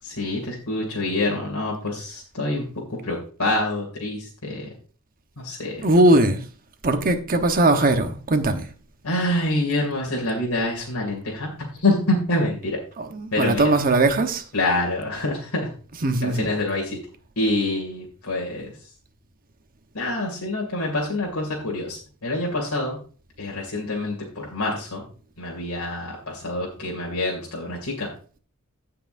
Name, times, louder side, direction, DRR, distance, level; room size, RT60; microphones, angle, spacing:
voice 1, 0.1-2.6 2.9-4.7 5.4-5.8 9.0-12.8 13.3-13.7 14.5-15.7 16.2-17.0 17.4-18.7 19.9-23.0 23.4-25.0 25.4-28.1, left 2 dB, 75° left, 2.5 m, -26 dB
voice 2, 5.8-6.4 6.8-8.6 13.0-14.4 16.0-16.5, right 2 dB, 40° right, 1.0 m, -19 dB
16.5 x 5.7 x 2.6 m
head